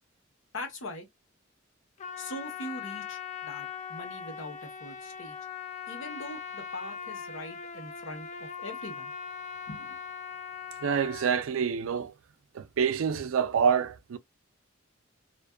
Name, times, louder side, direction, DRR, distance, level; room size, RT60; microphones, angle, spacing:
voice 1, 0.5-1.1 2.2-5.4 5.9-9.1 9.7-9.8, left 1 dB, 65° left, 1.0 m, -42 dB
Trumpet, 2.0-11.5, left 7 dB, 35° left, 0.4 m, -40 dB
voice 2, 10.8-12.1 12.5-14.2, right 7 dB, 75° right, 0.4 m, -27 dB
2.5 x 2.3 x 2.2 m
head